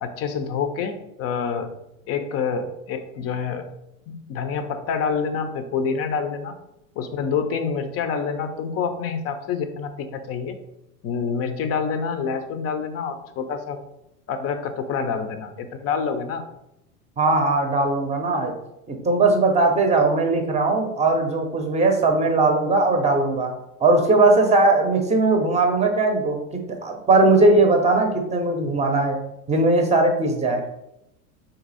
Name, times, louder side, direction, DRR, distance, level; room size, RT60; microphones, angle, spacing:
voice 1, 0.0-1.7 2.1-3.6 4.1-6.5 7.0-10.6 11.0-13.8 14.3-16.4, left 6 dB, 35° left, 8 dB, 0.6 m, -27 dB
voice 2, 17.2-18.5 18.9-23.5 23.8-29.2 29.5-30.6, right 2 dB, 15° right, 4 dB, 0.7 m, -19 dB
4.0 x 2.7 x 4.0 m, 0.84 s
hypercardioid pair, 100°, 43 cm